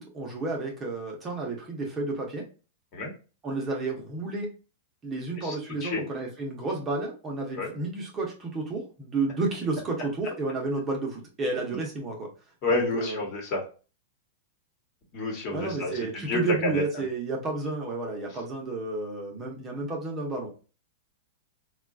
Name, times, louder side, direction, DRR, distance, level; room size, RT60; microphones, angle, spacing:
voice 1, 0.0-2.4 3.4-4.5 5.0-12.3 12.7-13.2 15.5-20.5, right 3 dB, 20° right, 0 dB, 0.7 m, -31 dB
voice 2, 12.6-13.6 15.1-16.8, left 2 dB, 40° left, 1 dB, 1.1 m, -29 dB
3.7 x 2.3 x 2.4 m, 0.34 s
hypercardioid pair, 145°, 0 cm